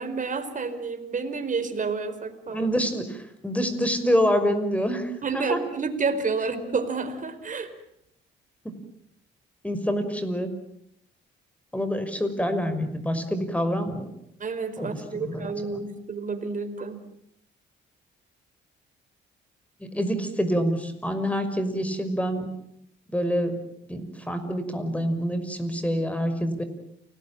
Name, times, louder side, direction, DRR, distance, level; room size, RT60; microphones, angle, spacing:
voice 1, 0.0-2.7 5.2-7.7 14.4-17.0, right 4 dB, 40° right, 9 dB, 4.7 m, -29 dB
voice 2, 2.5-5.6 9.6-10.5 11.7-14.0 14.8-15.9 19.8-22.5 23.1-23.6 23.9-26.6, equal, 5° left, 10 dB, 5.6 m, -26 dB
29.0 x 20.5 x 9.1 m, 0.76 s
cardioid pair, 90°, 20 cm